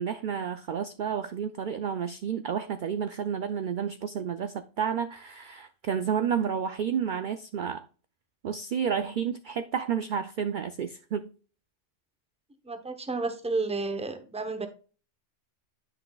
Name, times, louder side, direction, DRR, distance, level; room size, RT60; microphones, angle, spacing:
voice 1, 0.0-7.9 8.4-11.3, right 7 dB, 60° right, 10 dB, 0.5 m, -31 dB
voice 2, 12.7-14.7, right 3 dB, 5° right, 8 dB, 0.7 m, -31 dB
10.0 x 5.9 x 2.3 m, 0.38 s
omnidirectional pair, 1.3 m